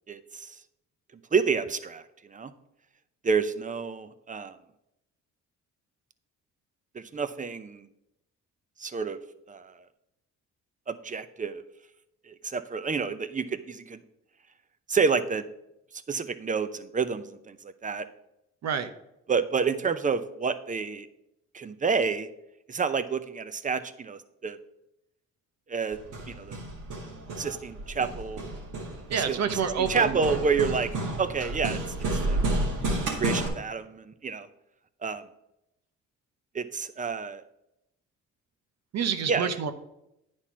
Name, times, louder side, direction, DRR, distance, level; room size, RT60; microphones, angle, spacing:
voice 1, 0.1-0.6 1.3-2.0 2.3-2.5 3.2-4.6 6.9-7.8 8.8-9.2 9.5-9.8 10.9-11.6 12.3-14.0 14.9-15.5 16.1-18.1 19.3-21.1 21.5-22.3 22.7-24.6 25.7-26.0 26.3-26.6 27.4-28.4 29.2-29.4 29.9-30.9 31.2-31.8 32.3-32.4 33.2-34.5 35.0-35.2 36.5-37.4 39.3-39.5, right 5 dB, 25° right, 12 dB, 0.7 m, -29 dB
Hammer, 25.9-33.5, right 2 dB, 85° right, 2.2 m, -31 dB
voice 2, 29.1-30.2 38.9-39.7, right 7 dB, 60° right, 9 dB, 1.0 m, -28 dB
9.7 x 4.4 x 6.0 m, 0.83 s
cardioid pair, 90°, 30 cm